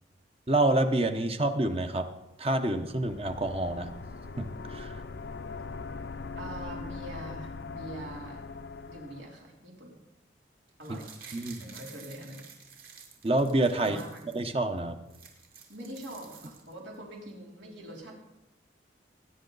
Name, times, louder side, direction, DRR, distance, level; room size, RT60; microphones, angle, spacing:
voice 1, 0.5-2.1 2.4-3.9 4.4-4.9 10.9-11.0 11.3-11.6 13.2-14.0 14.3-15.0, right 2 dB, 30° right, 7 dB, 0.9 m, -27 dB
sound 1, 2.9-9.4, left 4 dB, 65° left, 0.6 m, -41 dB
voice 2, 6.4-8.4 8.9-10.0 10.8-12.7 13.8-14.5 15.7-18.1, right 1 dB, 85° right, -2 dB, 3.4 m, -44 dB
sound 2, 10.7-14.4 14.8-14.9 15.0-16.9 17.3-17.4, right 6 dB, 50° right, 2.5 m, -51 dB
20.0 x 10.0 x 4.0 m, 0.90 s
head